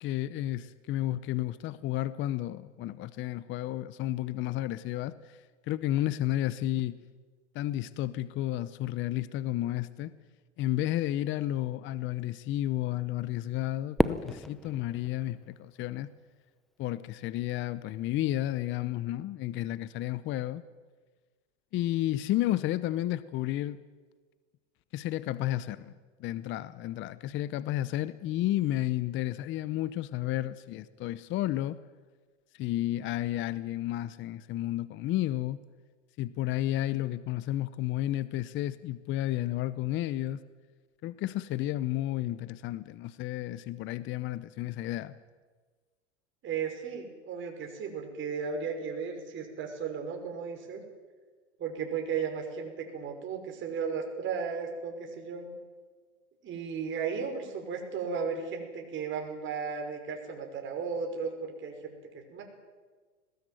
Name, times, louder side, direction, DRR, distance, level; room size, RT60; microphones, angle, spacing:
voice 1, 0.0-7.0 7.5-10.1 10.6-16.1 16.8-20.6 21.7-23.8 24.9-25.9 26.2-31.8 32.5-35.6 36.2-40.4 41.0-45.1, left 14 dB, 30° left, 16 dB, 0.8 m, -32 dB
Fireworks, 14.0-16.3, equal, ahead, 0.7 m, -32 dB
voice 2, 46.4-50.8 51.6-55.5 56.4-62.4, right 6 dB, 30° right, 3 dB, 5.6 m, -35 dB
21.5 x 19.5 x 9.3 m, 1.4 s
hypercardioid pair, 115°, 37 cm